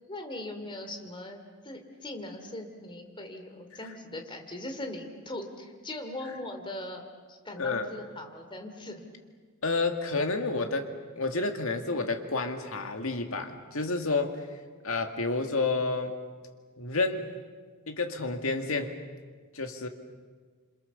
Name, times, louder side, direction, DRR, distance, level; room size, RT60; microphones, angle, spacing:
voice 1, 0.1-9.0, left 1 dB, 25° left, 4 dB, 2.9 m, -40 dB
voice 2, 7.6-7.9 9.6-14.5 14.8-16.1 16.8-17.3 17.9-18.9 19.5-19.9, left 3 dB, 75° left, 5 dB, 2.1 m, -30 dB
27.5 x 26.5 x 7.0 m, 1.5 s
head